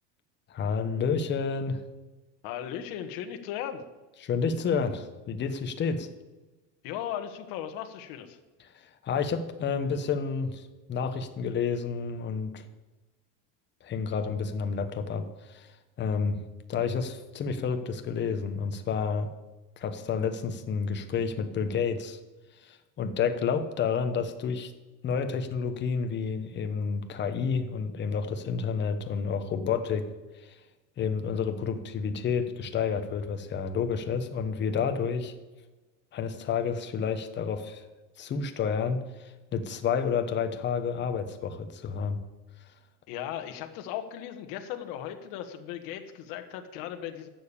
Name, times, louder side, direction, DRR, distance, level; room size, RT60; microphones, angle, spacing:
voice 1, 0.5-1.8 4.2-6.1 9.0-10.6 10.9-12.6 13.8-16.4 16.7-19.3 19.8-22.2 22.6-24.7 25.0-30.1 30.3-30.6 31.0-35.3 36.1-37.8 38.2-42.2, left 6 dB, 25° left, 8 dB, 1.1 m, -30 dB
voice 2, 2.4-3.8 6.8-8.4 43.1-47.3, left 10 dB, 60° left, 7 dB, 1.5 m, -37 dB
11.5 x 7.3 x 8.6 m, 1.2 s
cardioid pair, 150°, 39 cm